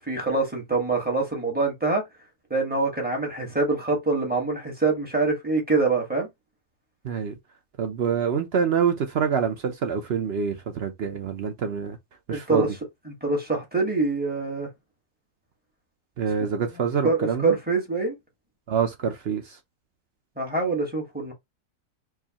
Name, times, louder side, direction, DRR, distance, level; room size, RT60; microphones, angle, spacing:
voice 1, 0.1-2.0 2.5-6.3 12.3-12.7 13.1-14.7 17.0-18.1 20.4-21.3, right 3 dB, 5° right, 1.1 m, -25 dB
voice 2, 7.0-7.3 7.8-12.0 12.3-12.7 16.2-17.6 18.7-19.6, right 7 dB, 65° right, 0.6 m, -26 dB
4.7 x 2.5 x 2.8 m
omnidirectional pair, 1.7 m